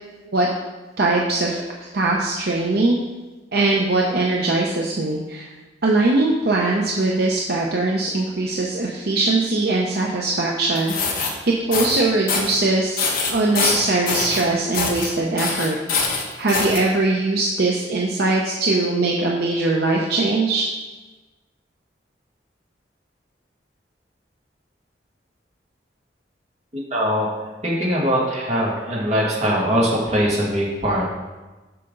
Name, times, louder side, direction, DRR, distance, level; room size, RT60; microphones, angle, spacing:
voice 1, 1.0-3.0 3.5-5.5 5.8-15.8 16.4-20.7, right 2 dB, 60° right, -2 dB, 0.8 m, -21 dB
sound 1, 10.7-11.3 11.7-12.0 12.3-12.6 13.0-14.4 14.7-15.1 15.4-16.8, left 4 dB, 55° left, 1.2 m, -23 dB
voice 2, 26.9-27.3 27.6-31.1, equal, 40° right, -4 dB, 2.0 m, -21 dB
7.8 x 5.7 x 3.9 m, 1.2 s
head